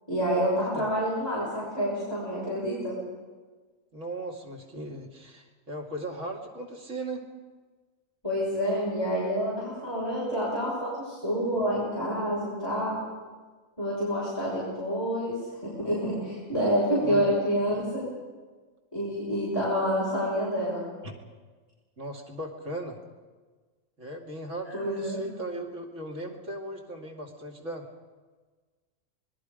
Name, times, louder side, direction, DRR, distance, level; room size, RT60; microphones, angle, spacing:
voice 1, 0.1-2.9 8.2-13.0 13.8-15.4 15.6-18.0 18.9-20.8 24.7-25.2, equal, 20° left, -8 dB, 6.4 m, -28 dB
voice 2, 3.9-7.3 17.0-17.3 21.0-21.1 22.0-23.0 24.0-27.9, right 1 dB, 65° right, 0 dB, 2.9 m, -37 dB
26.0 x 20.5 x 5.2 m, 1.4 s
omnidirectional pair, 1.4 m